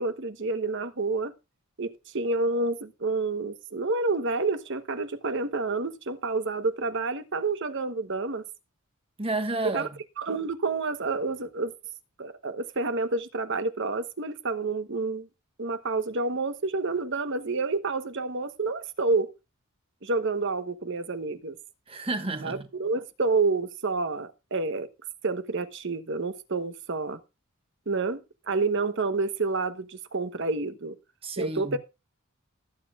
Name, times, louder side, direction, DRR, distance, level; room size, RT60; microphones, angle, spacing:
voice 1, 0.0-1.3 1.8-8.4 9.6-9.9 10.2-11.7 12.2-15.3 15.6-19.3 20.0-21.6 22.4-24.9 25.2-27.2 27.9-31.0 31.4-31.8, right 3 dB, 60° right, 1.1 m, -29 dB
voice 2, 9.2-10.0 21.9-22.7 31.2-31.8, right 2 dB, 25° right, 1.3 m, -31 dB
20.0 x 8.4 x 2.4 m
head